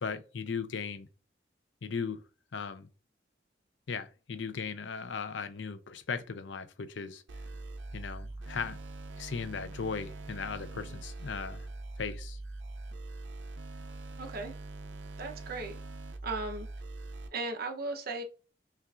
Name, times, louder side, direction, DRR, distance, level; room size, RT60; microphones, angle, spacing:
voice 1, 0.0-1.1 1.8-2.2 2.5-2.9 3.9-7.2 7.9-8.8 9.2-11.7 12.0-12.4, left 5 dB, 85° left, 0.6 m, -37 dB
sound 1, 7.3-17.3, right 2 dB, 85° right, 0.5 m, -43 dB
voice 2, 14.2-14.6 15.2-15.7 16.2-16.7 17.3-18.2, right 3 dB, 55° right, 0.8 m, -36 dB
5.6 x 2.5 x 2.4 m
head